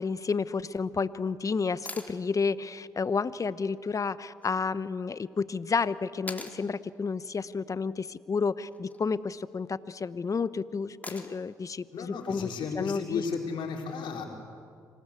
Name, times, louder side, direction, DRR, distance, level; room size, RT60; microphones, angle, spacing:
voice 1, 0.0-12.5 12.8-13.2, left 5 dB, 40° left, 16 dB, 1.0 m, -31 dB
sound 1, 1.9-2.2 4.4-4.5 6.3-6.6 8.6-9.0 11.0-11.5 13.6-13.7, left 2 dB, 20° left, 3.2 m, -41 dB
voice 2, 11.9-14.2, left 5 dB, 70° left, 1 dB, 4.2 m, -33 dB
26.5 x 19.0 x 8.4 m, 2.3 s
hypercardioid pair, 50°, 9 cm